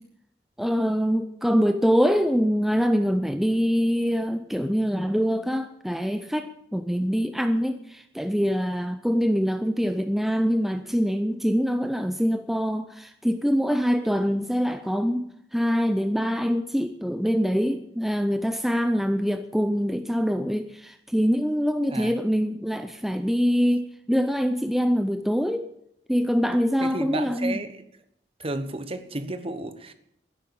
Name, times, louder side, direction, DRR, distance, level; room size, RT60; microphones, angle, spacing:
voice 1, 0.6-25.7 26.1-27.6, equal, ahead, 0.5 m, -24 dB
voice 2, 21.9-22.2 26.8-27.7 28.4-29.9, right 2 dB, 35° right, 1.1 m, -32 dB
12.5 x 10.5 x 8.5 m
head